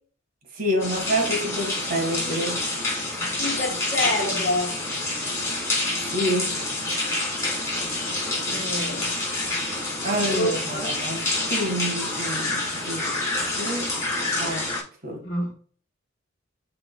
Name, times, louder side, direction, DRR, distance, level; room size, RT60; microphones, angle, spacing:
voice 1, 0.5-2.6 6.1-6.6 10.0-13.2 13.6-14.0 14.4-14.7 15.0-15.2, equal, 45° right, 1.8 m, -28 dB
sound 1, 0.8-14.8, left 2 dB, 15° left, 2.7 m, -27 dB
voice 2, 3.4-4.7 8.5-9.8 10.3-10.9 15.2-15.5, left 1 dB, 45° left, 1.4 m, -28 dB
10.5 x 3.9 x 2.3 m
head